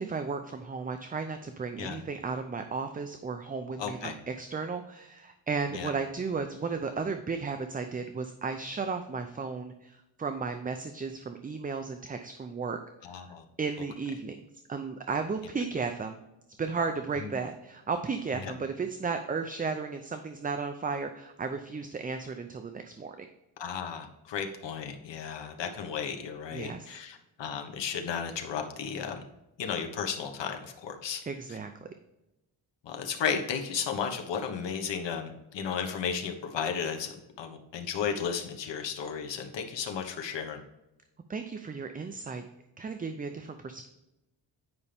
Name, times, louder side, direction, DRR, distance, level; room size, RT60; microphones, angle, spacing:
voice 1, 0.0-12.8 13.1-14.4 14.7-16.2 16.6-23.3 26.5-26.9 31.3-31.9 41.3-42.4 42.8-43.9, right 4 dB, 20° right, 7 dB, 0.4 m, -34 dB
voice 2, 3.8-4.1 5.7-5.9 13.0-13.4 17.2-17.3 18.4-18.5 23.6-29.2 29.6-31.2 31.5-31.6 32.8-40.6, left 7 dB, 65° left, 4 dB, 1.4 m, -34 dB
9.6 x 5.5 x 3.4 m, 0.93 s
cardioid pair, 140°, 47 cm